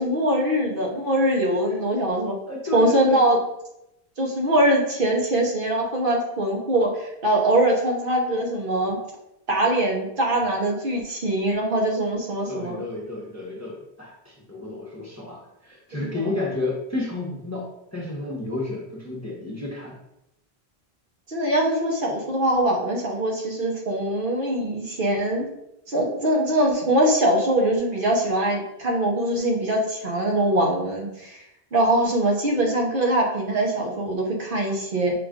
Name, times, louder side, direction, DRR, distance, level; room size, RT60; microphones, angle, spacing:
voice 1, 0.0-2.3 2.7-3.4 4.2-9.0 9.5-12.8 15.9-16.4 21.3-25.5 25.9-31.4 31.7-35.1, right 1 dB, 60° right, -1 dB, 1.0 m, -22 dB
voice 2, 2.5-3.3 12.5-14.1 14.5-19.9, left 2 dB, 15° left, -3 dB, 0.8 m, -31 dB
5.0 x 2.5 x 3.5 m, 0.83 s
omnidirectional pair, 1.1 m